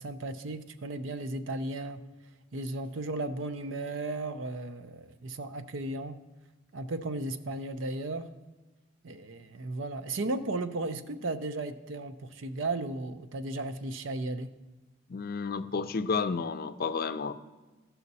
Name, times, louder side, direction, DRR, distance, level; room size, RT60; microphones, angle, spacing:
voice 1, 0.0-2.0 2.5-6.2 6.7-8.3 9.0-14.5, right 2 dB, 85° right, 10 dB, 0.6 m, -35 dB
voice 2, 15.1-17.3, left 5 dB, 50° left, 12 dB, 0.5 m, -31 dB
14.5 x 5.7 x 4.1 m, 1.2 s
head